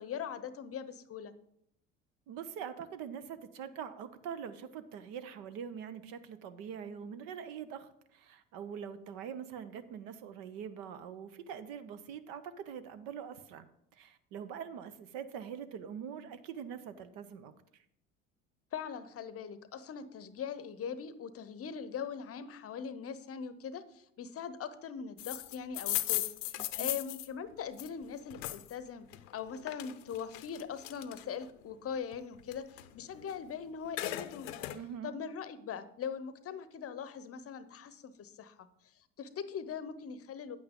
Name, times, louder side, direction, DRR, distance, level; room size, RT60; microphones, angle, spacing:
voice 1, 0.0-1.3 18.7-34.6 35.0-38.7 39.2-40.6, left 7 dB, 35° left, 14 dB, 0.7 m, -41 dB
voice 2, 2.3-13.7 13.9-17.5 26.7-27.0 34.7-35.1, right 8 dB, 60° right, 12 dB, 0.8 m, -43 dB
sound 1, 25.2-28.7 29.1-31.5 31.9-33.5 33.7-34.8, left 16 dB, 75° left, 0.6 m, -37 dB
9.2 x 8.7 x 3.7 m, 0.74 s
hypercardioid pair, 65°, 39 cm